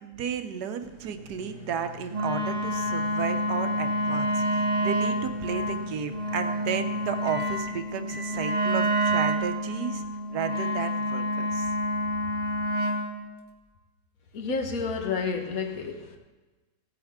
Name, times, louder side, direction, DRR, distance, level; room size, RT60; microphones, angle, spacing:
voice 1, 0.0-11.7, right 8 dB, 75° right, 8 dB, 1.3 m, -33 dB
sound 1, 0.8-11.1, left 1 dB, 20° left, 1.0 m, -45 dB
Wind instrument woodwind instrument, 2.1-13.1, equal, 35° right, 1.3 m, -28 dB
voice 2, 14.3-16.2, left 4 dB, 55° left, 4 dB, 1.6 m, -30 dB
16.5 x 8.8 x 3.6 m, 1.2 s
omnidirectional pair, 1.8 m